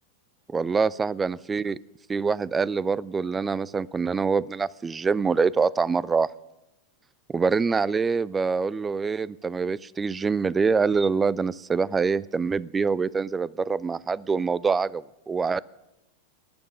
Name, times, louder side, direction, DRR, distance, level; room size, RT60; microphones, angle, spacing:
voice 1, 0.5-1.8 2.1-6.3 7.3-15.6, right 5 dB, 15° right, 22 dB, 0.4 m, -25 dB
12.0 x 9.6 x 10.0 m, 0.98 s
figure-of-eight pair, 90°, 0 cm